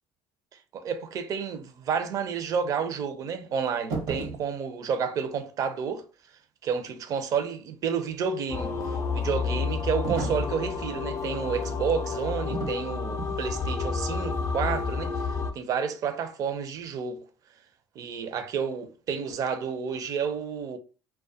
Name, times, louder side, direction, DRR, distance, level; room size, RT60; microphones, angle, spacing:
voice 1, 0.5-6.1 6.6-17.2 18.0-20.8, right 6 dB, 55° right, 0.5 m, -30 dB
sound 1, 3.9-4.5 10.0-10.6 12.5-12.8 13.2-13.5, right 4 dB, 80° right, 0.9 m, -33 dB
sound 2, 8.5-15.5, left 5 dB, 40° left, 0.5 m, -30 dB
2.2 x 2.1 x 2.7 m
supercardioid pair, 80°, 7 cm